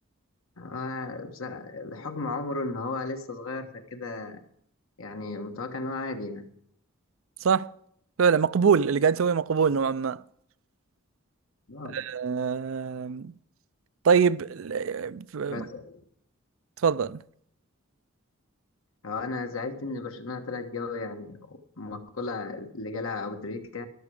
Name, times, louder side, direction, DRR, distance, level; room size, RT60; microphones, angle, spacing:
voice 1, 0.6-4.4 5.0-6.5 11.7-12.0 15.5-16.0 19.0-23.9, left 3 dB, 75° left, 1.5 m, -35 dB
voice 2, 8.2-10.2 11.9-13.3 14.0-15.7 16.8-17.2, right 6 dB, 70° right, 0.4 m, -24 dB
13.5 x 11.5 x 4.9 m
head